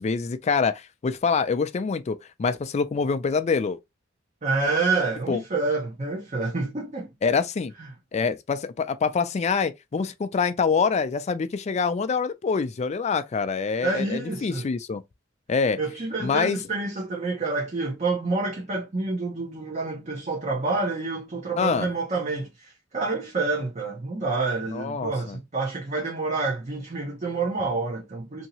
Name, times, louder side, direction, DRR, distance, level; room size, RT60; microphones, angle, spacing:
voice 1, 0.0-3.8 5.3-5.4 7.2-7.7 8.1-15.0 15.5-15.8 16.2-16.6 21.6-21.9 24.7-25.4, left 5 dB, 35° left, 0.3 m, -25 dB
voice 2, 4.4-7.1 7.8-7.9 13.8-14.7 15.8-28.5, right 3 dB, 35° right, 0.7 m, -28 dB
2.8 x 2.7 x 2.7 m
head